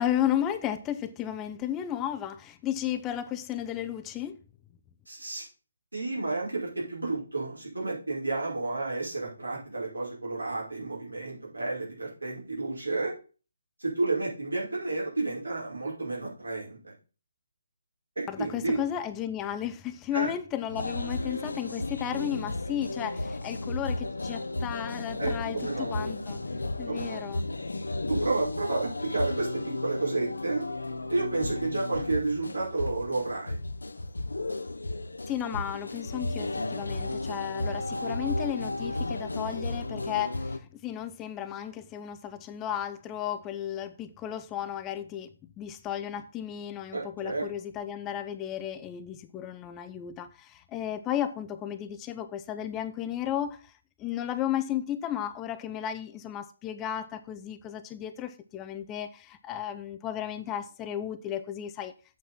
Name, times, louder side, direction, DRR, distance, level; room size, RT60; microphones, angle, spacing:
voice 1, 0.0-4.4 18.3-26.4 26.8-27.5 35.3-53.7 54.0-61.9, left 10 dB, 15° left, 0.6 m, -34 dB
voice 2, 5.1-5.5 5.9-13.1 13.8-16.9 18.2-18.8 20.1-20.3 25.2-26.0 26.9-27.2 28.1-30.6 31.1-33.6 46.9-47.5, right 3 dB, 85° right, 5.6 m, -31 dB
sound 1, 20.7-40.6, left 2 dB, 80° left, 0.8 m, -34 dB
8.3 x 6.1 x 5.5 m
figure-of-eight pair, 145°, 0 cm